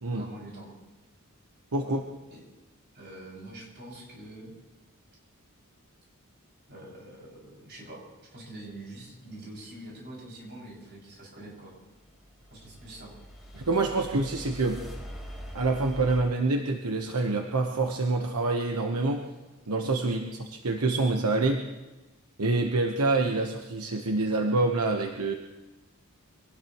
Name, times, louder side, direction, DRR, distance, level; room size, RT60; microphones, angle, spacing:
voice 1, 0.0-0.7 1.8-1.9 2.3-2.4 2.9-4.5 6.7-11.7 12.5-13.1 20.0-20.1, right 1 dB, 50° right, -4 dB, 6.5 m, -45 dB
voice 2, 1.7-2.0 13.5-14.8 15.5-19.2 19.7-20.2 20.6-21.6 22.4-25.3, right 3 dB, 85° right, 3 dB, 1.1 m, -26 dB
sound 1, 12.0-16.2, equal, ahead, 4.0 m, -43 dB
25.5 x 18.5 x 3.1 m, 1.1 s
head